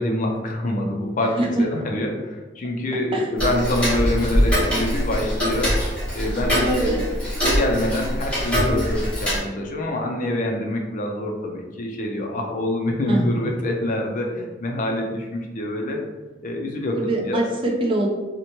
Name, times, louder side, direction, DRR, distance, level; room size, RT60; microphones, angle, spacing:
voice 1, 0.0-5.8 6.1-7.0 7.4-16.0 16.4-17.4, left 1 dB, 45° left, 1 dB, 0.4 m, -26 dB
Tick-tock, 3.4-9.4, equal, 5° left, 0.8 m, -23 dB
voice 2, 6.6-7.0 13.1-13.2 16.9-18.1, right 2 dB, 30° right, -1 dB, 0.5 m, -23 dB
2.7 x 2.1 x 2.9 m, 1.2 s
head